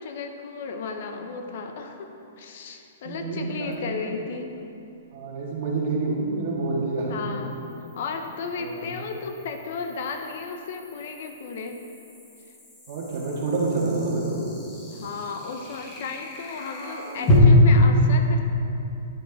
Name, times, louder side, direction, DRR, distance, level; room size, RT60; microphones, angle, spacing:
voice 1, 0.0-4.5 7.1-7.6 8.0-11.8 14.9-18.4, left 4 dB, 45° left, 5 dB, 0.7 m, -34 dB
voice 2, 3.0-3.9 5.1-7.2 8.6-8.8 12.9-14.4, right 3 dB, 45° right, -2 dB, 1.6 m, -28 dB
sound 1, 3.7-3.8 7.2-17.4, equal, 15° left, 1.1 m, -34 dB
10.0 x 6.5 x 4.0 m, 2.8 s
hypercardioid pair, 170°, 0 cm